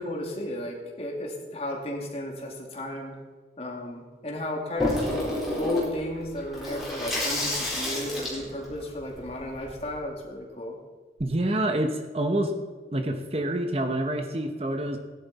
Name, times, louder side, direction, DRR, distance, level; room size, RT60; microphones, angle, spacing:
voice 1, 0.0-3.2 3.6-5.0 5.6-10.8, left 1 dB, 35° left, 0 dB, 2.4 m, -34 dB
Water tap faucet / Sink (filling or washing), 4.8-10.0, left 1 dB, ahead, 4.0 m, -30 dB
voice 2, 11.2-12.5 12.9-15.0, right 1 dB, 35° right, 6 dB, 0.9 m, -27 dB
17.0 x 11.0 x 4.2 m, 1.5 s
head